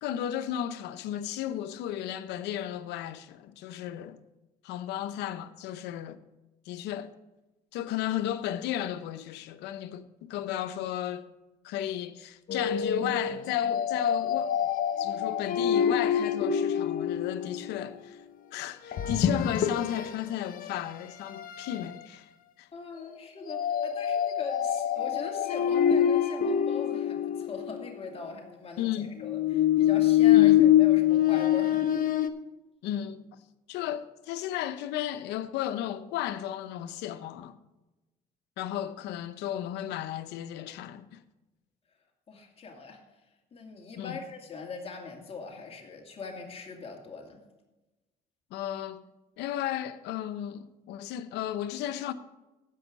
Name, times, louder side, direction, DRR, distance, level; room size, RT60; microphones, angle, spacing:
voice 1, 0.0-4.2 4.6-6.2 6.7-7.1 7.7-11.2 11.6-14.6 15.0-18.2 18.5-22.3 22.6-22.7 28.8-29.1 30.3-30.7 32.8-33.4 33.7-37.6 38.6-41.2 44.0-44.2 48.5-49.0 49.4-52.1, left 11 dB, 85° left, 0.7 m, -34 dB
sound 1, 12.5-17.8 18.9-20.2 20.6-20.8 21.4-21.9 23.5-27.9 29.2-32.3, left 10 dB, 55° left, 0.8 m, -25 dB
voice 2, 22.7-31.9 42.3-43.0 43.5-47.4, left 4 dB, 35° left, 2.4 m, -41 dB
15.0 x 5.5 x 5.3 m
cardioid pair, 110°, 17 cm